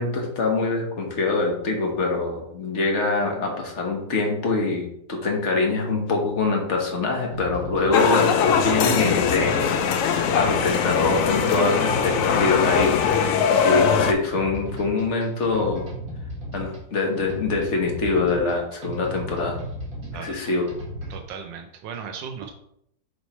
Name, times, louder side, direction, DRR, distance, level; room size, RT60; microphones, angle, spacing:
voice 1, 0.0-9.7 10.3-12.9 13.6-15.9 16.5-19.6 20.1-20.7, left 3 dB, 45° left, 1 dB, 1.3 m, -24 dB
sound 1, 7.3-21.3, equal, 55° right, 2.1 m, -35 dB
sound 2, 7.9-14.1, left 6 dB, 75° left, 0.7 m, -21 dB
voice 2, 21.1-22.5, right 6 dB, 90° right, 3 dB, 1.3 m, -36 dB
6.9 x 3.1 x 4.3 m, 0.75 s
omnidirectional pair, 1.9 m